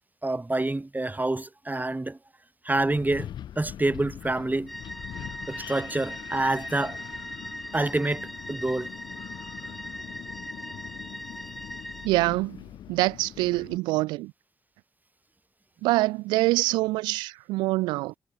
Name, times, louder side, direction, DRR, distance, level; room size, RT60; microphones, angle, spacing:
voice 1, 0.2-2.2 2.6-3.3 3.6-4.7 5.5-7.0 7.7-8.9, right 2 dB, 25° right, 5.3 m, -27 dB
Wind, 2.8-13.8, left 10 dB, 75° left, 4.3 m, -43 dB
sound 1, 4.7-12.1, equal, ahead, 4.3 m, -40 dB
voice 2, 12.0-12.6 12.9-14.3 15.8-18.1, right 20 dB, 90° right, 0.7 m, -25 dB
hypercardioid pair, 40°, 8 cm